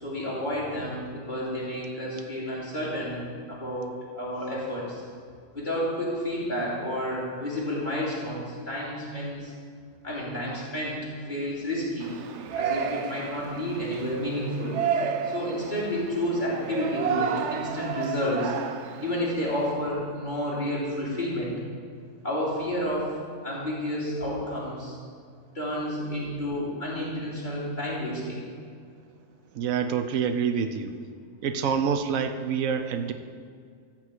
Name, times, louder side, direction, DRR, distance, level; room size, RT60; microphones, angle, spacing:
voice 1, 0.0-3.2 3.5-5.0 5.5-9.5 10.0-11.0 11.3-12.1 12.5-14.8 15.2-18.5 19.0-21.5 22.2-23.1 23.4-25.0 25.5-28.4, equal, 35° left, -7 dB, 3.2 m, -30 dB
Yell, 12.0-19.7, right 7 dB, 65° right, 0.9 m, -32 dB
voice 2, 29.5-30.9 31.4-33.1, right 7 dB, 90° right, 8 dB, 1.1 m, -27 dB
13.5 x 4.5 x 8.0 m, 2.1 s
omnidirectional pair, 1.4 m